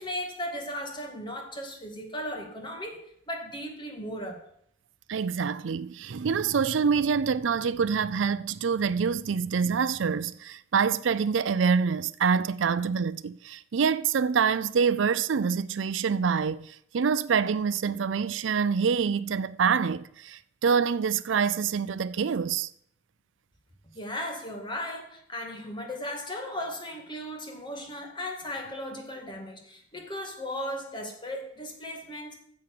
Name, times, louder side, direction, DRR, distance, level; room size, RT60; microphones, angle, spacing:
voice 1, 0.0-4.4 23.9-32.4, left 1 dB, 25° left, 2.1 m, -36 dB
voice 2, 5.1-22.7, right 6 dB, 80° right, 0.5 m, -26 dB
9.4 x 7.4 x 6.6 m
head